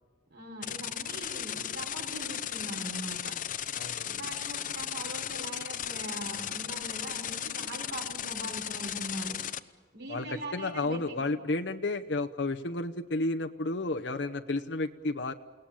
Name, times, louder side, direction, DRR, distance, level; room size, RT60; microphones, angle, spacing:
voice 1, 0.3-3.3 4.1-9.4 9.9-11.3, right 1 dB, 65° right, 1 dB, 6.2 m, -41 dB
sound 1, 0.6-9.6, left 10 dB, 45° left, 0.8 m, -36 dB
voice 2, 3.7-4.2 10.1-15.3, left 2 dB, 80° left, 7 dB, 1.0 m, -32 dB
29.5 x 18.0 x 8.9 m, 1.5 s
head